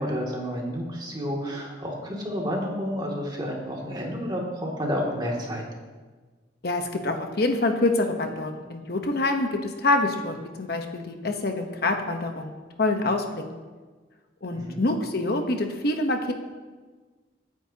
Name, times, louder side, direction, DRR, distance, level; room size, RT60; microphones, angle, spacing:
voice 1, 0.0-5.6 14.5-14.8, equal, 25° right, -2 dB, 2.5 m, -30 dB
voice 2, 6.6-13.6 14.4-16.3, left 2 dB, 60° left, 4 dB, 1.0 m, -26 dB
23.5 x 9.5 x 2.9 m, 1.4 s
head